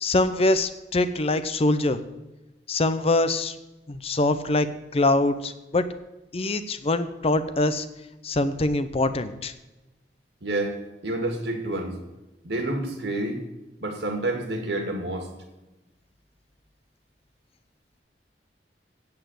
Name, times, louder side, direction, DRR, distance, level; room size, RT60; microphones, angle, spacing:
voice 1, 0.0-2.0 2.7-3.5 3.9-4.7 4.9-5.8 6.3-7.9 8.2-9.5, left 2 dB, 35° left, 11 dB, 0.6 m, -23 dB
voice 2, 10.4-10.8 11.0-12.0 12.4-13.4 13.8-15.3, right 2 dB, 70° right, 4 dB, 2.1 m, -28 dB
8.6 x 8.0 x 7.8 m, 1.0 s
head